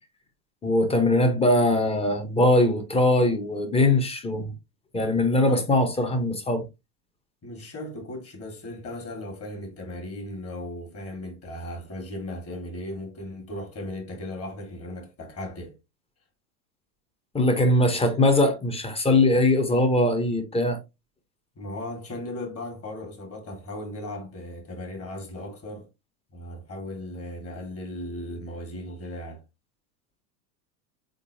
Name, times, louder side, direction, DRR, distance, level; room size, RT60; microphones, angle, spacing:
voice 1, 0.6-4.5 4.9-6.6 17.3-20.8, left 1 dB, 10° left, 1.0 m, -21 dB
voice 2, 7.4-15.7 21.6-25.9 26.3-29.4, left 1 dB, 30° left, 1.8 m, -37 dB
4.0 x 3.8 x 2.7 m
hypercardioid pair, 105°, 48 cm